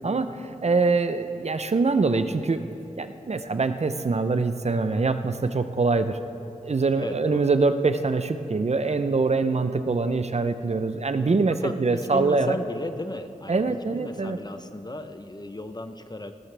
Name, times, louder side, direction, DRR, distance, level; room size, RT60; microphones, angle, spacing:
voice 1, 0.0-2.6 3.0-6.2 6.6-12.6 13.5-14.4, right 3 dB, 50° right, 10 dB, 0.6 m, -24 dB
voice 2, 6.9-7.5 11.6-16.3, left 2 dB, 30° left, 8 dB, 0.7 m, -35 dB
19.0 x 13.0 x 3.4 m, 2.8 s
wide cardioid pair, 50°, 14 cm